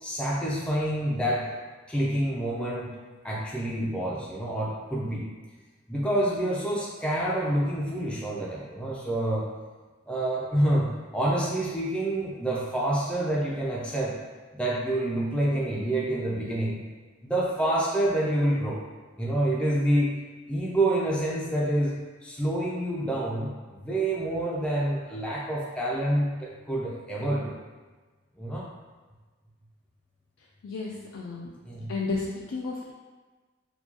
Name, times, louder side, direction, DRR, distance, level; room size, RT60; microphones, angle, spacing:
voice 1, 0.0-1.6 1.9-2.9 3.2-5.3 5.9-9.5 10.1-14.2 14.5-16.8 17.2-18.8 19.2-20.2 20.5-27.5 28.4-28.7 31.6-31.9, right 1 dB, 5° left, -5 dB, 0.4 m, -27 dB
voice 2, 30.6-31.5 31.9-32.9, left 3 dB, 90° left, -3 dB, 0.4 m, -32 dB
4.4 x 2.3 x 2.8 m, 1.3 s
head